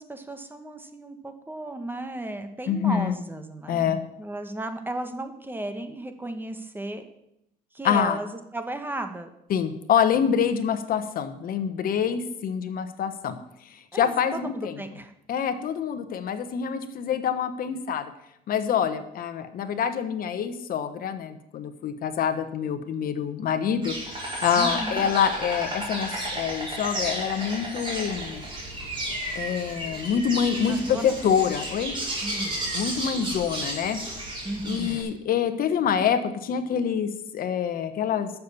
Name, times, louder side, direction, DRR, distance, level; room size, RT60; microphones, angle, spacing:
voice 1, 0.0-7.0 7.7-9.3 13.9-15.1 24.6-25.1 30.7-31.2 32.2-32.6 34.4-35.0, right 1 dB, 10° right, 7 dB, 1.3 m, -35 dB
voice 2, 2.7-3.2 3.7-4.0 7.8-8.2 9.5-13.4 13.7-14.8 15.3-18.1 18.5-23.9 24.4-28.4 29.3-32.0 32.7-34.0 34.6-38.3, left 8 dB, 60° left, 10 dB, 1.2 m, -26 dB
Insect, 23.8-35.0, right 1 dB, 30° right, 5.0 m, -32 dB
11.5 x 7.1 x 6.8 m, 0.81 s
cardioid pair, 110°, 17 cm